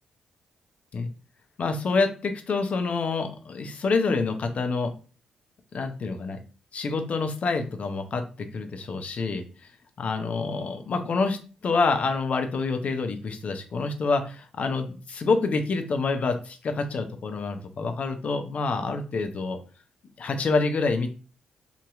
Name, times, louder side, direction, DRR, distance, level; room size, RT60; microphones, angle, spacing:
voice 1, 1.6-4.9 5.7-6.4 6.7-8.2 8.5-9.4 10.0-19.6 20.2-21.1, left 4 dB, 55° left, 7 dB, 0.5 m, -27 dB
2.9 x 2.7 x 2.3 m, 0.36 s
hypercardioid pair, 40°, 3 cm